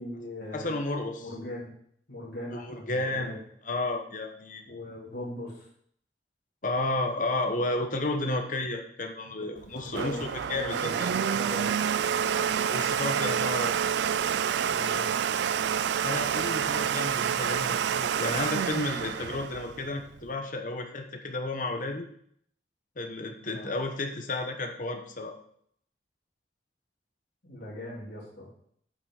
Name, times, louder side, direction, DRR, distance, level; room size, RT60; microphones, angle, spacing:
voice 1, 0.0-0.7 1.2-1.7 2.1-3.4 4.7-5.7 9.4-10.3 10.5-11.7 14.6-15.1 23.5-23.7 27.4-28.5, left 1 dB, 70° left, -5 dB, 3.5 m, -40 dB
voice 2, 0.5-1.3 2.5-3.3 3.6-4.6 6.6-11.1 12.7-13.7 16.0-22.1 23.0-25.3, left 2 dB, 50° left, 4 dB, 1.2 m, -32 dB
Domestic sounds home sounds, 9.6-20.3, right 8 dB, 80° right, 0.3 m, -28 dB
9.7 x 6.1 x 4.9 m, 0.66 s
head